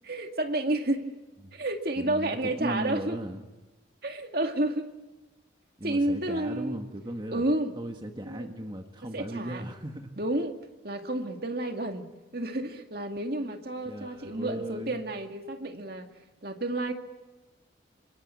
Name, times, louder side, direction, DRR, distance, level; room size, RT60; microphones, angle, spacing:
voice 1, 0.0-1.2 1.5-3.2 4.0-4.9 5.8-6.8 7.3-7.7 8.2-8.6 9.1-9.6 10.2-10.6 10.8-12.1 12.3-16.1 16.4-16.9, right 1 dB, 50° right, 5 dB, 2.2 m, -30 dB
voice 2, 2.0-3.5 5.8-7.4 7.8-10.2 13.8-15.0, right 1 dB, 25° right, 4 dB, 1.6 m, -37 dB
27.0 x 24.0 x 8.4 m, 1.1 s
head